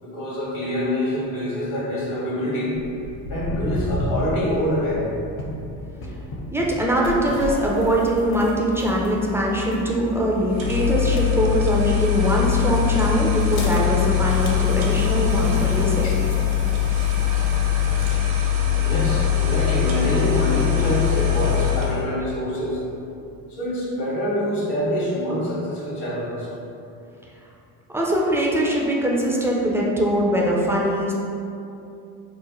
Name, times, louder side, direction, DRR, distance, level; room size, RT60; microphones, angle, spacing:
voice 1, 0.0-2.8 3.3-5.0 16.0-16.1 18.8-22.8 23.5-26.5, equal, 70° left, -6 dB, 1.3 m, -25 dB
Walk footsteps, 2.8-9.4 9.7-10.1 10.7-10.8 11.4-11.5 11.9-12.0 12.2-12.3 12.9-13.0 13.7-15.3 15.9-16.0 16.7-16.8 17.2-17.5 18.1-18.2, equal, 90° left, 1.2 m, -33 dB
sound 1, 4.9-18.3, left 2 dB, 50° left, 0.7 m, -36 dB
voice 2, 6.5-16.1 27.9-31.1, equal, 5° right, -3 dB, 0.3 m, -22 dB
sound 2, 10.5-22.1, left 9 dB, 70° right, 0.8 m, -22 dB
3.1 x 2.1 x 3.8 m, 2.6 s
supercardioid pair, 75°, 48 cm